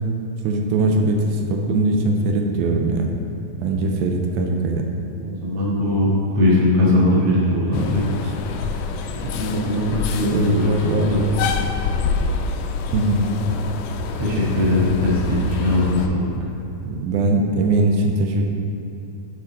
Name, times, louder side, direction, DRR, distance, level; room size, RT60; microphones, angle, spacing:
voice 1, 0.4-3.1 3.6-4.9 10.3-11.1 12.9-13.3 16.8-18.5, right 2 dB, 90° right, 2 dB, 2.5 m, -20 dB
voice 2, 5.2-8.1 9.1-11.3 14.2-16.3, left 1 dB, 50° right, -5 dB, 2.2 m, -20 dB
sound 1, 7.7-16.1, left 4 dB, 80° left, 1.9 m, -27 dB
12.5 x 5.1 x 4.1 m, 2.6 s
omnidirectional pair, 4.2 m